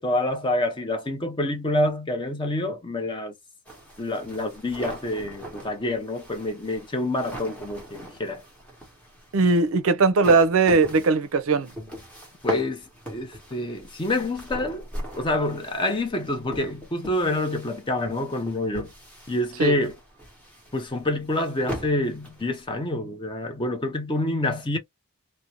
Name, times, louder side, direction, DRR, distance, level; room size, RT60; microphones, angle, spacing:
voice 1, 0.0-3.3 4.0-8.4 12.4-14.8 15.2-18.9 19.3-19.9 20.7-24.8, left 1 dB, 20° left, 0.6 m, -27 dB
sound 1, 3.7-22.9, equal, 5° left, 0.9 m, -39 dB
voice 2, 9.3-11.7 19.6-19.8, right 4 dB, 65° right, 0.5 m, -19 dB
2.5 x 2.1 x 2.9 m
head